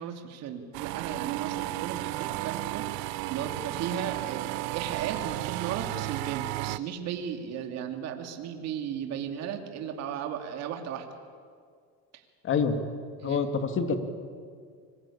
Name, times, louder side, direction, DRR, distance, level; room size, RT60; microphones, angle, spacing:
voice 1, 0.0-11.1 12.1-12.2 13.2-13.4, right 8 dB, 55° right, 4 dB, 2.8 m, -35 dB
sound 1, 0.7-6.8, right 19 dB, 70° right, 0.8 m, -33 dB
voice 2, 12.4-12.8 13.2-14.0, left 5 dB, 40° left, 7 dB, 2.7 m, -26 dB
25.5 x 22.5 x 8.7 m, 2.1 s
supercardioid pair, 110°, 31 cm